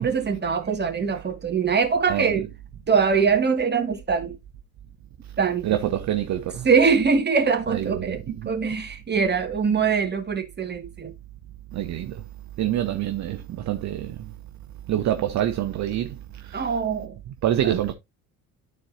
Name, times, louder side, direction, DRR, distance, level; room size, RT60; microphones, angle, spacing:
voice 1, 0.0-2.5 2.9-4.4 5.4-5.8 6.6-11.1 16.5-17.1 17.6-17.7, right 5 dB, 25° right, 2.3 m, -23 dB
voice 2, 5.6-6.7 7.7-8.2 11.7-12.2 12.6-14.2 14.9-16.2 16.4-16.6 17.4-17.9, right 12 dB, 40° right, 0.9 m, -26 dB
12.5 x 4.4 x 2.8 m
figure-of-eight pair, 60°, 42 cm